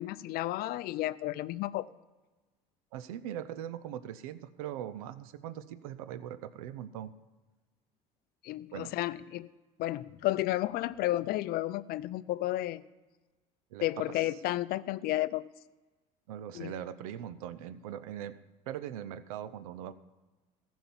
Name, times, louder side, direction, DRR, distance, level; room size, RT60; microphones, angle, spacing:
voice 1, 0.0-1.8 8.4-9.5 9.8-12.8 13.8-15.5 16.5-16.7, left 15 dB, 60° left, 16 dB, 0.5 m, -32 dB
voice 2, 2.9-7.1 8.7-8.9 13.7-14.2 16.3-18.4 18.7-19.9, right 10 dB, 85° right, 14 dB, 0.7 m, -41 dB
15.5 x 6.1 x 7.1 m, 1.2 s
hypercardioid pair, 80°, 18 cm